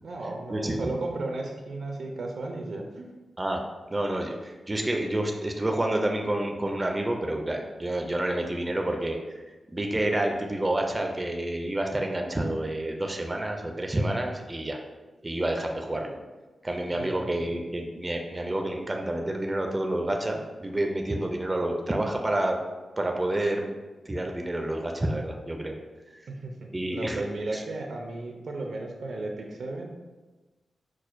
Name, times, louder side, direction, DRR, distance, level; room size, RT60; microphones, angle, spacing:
voice 1, 0.0-3.1 16.9-17.5 26.3-26.5 26.9-29.9, right 2 dB, 70° right, 1 dB, 0.5 m, -34 dB
voice 2, 3.9-9.4 9.7-14.8 15.2-16.2 16.6-22.6 23.0-23.7 24.1-25.7 26.2-26.3 26.7-27.2 27.5-27.6, right 1 dB, 20° right, 2 dB, 0.4 m, -29 dB
6.0 x 2.1 x 2.5 m, 1.2 s
cardioid pair, 85°, 0 cm